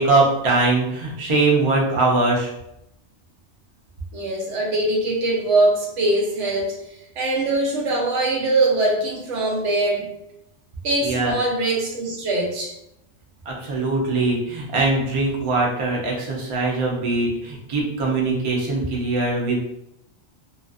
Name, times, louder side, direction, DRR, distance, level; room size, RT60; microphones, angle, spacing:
voice 1, 0.0-2.5 11.0-11.3 13.5-19.6, right 3 dB, 40° right, -3 dB, 0.5 m, -21 dB
voice 2, 4.1-6.8 7.2-10.1 10.8-12.7, right 2 dB, 85° right, -1 dB, 1.0 m, -22 dB
2.5 x 2.3 x 2.4 m, 0.82 s
omnidirectional pair, 1.2 m